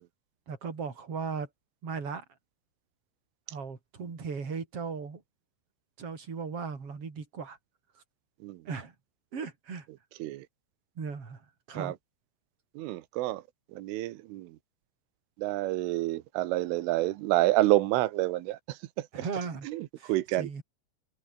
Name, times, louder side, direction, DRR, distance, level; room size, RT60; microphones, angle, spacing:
voice 1, 0.5-1.5 1.8-2.2 3.5-5.2 6.0-7.6 8.6-8.9 9.3-9.9 11.0-11.4 11.7-11.9 19.1-19.7 20.0-20.6, right 5 dB, 30° right, 4.4 m, -37 dB
voice 2, 12.8-13.4 13.8-14.5 15.4-18.6 19.0-19.1 19.7-20.5, right 16 dB, 85° right, 3.7 m, -28 dB
omnidirectional pair, 5.6 m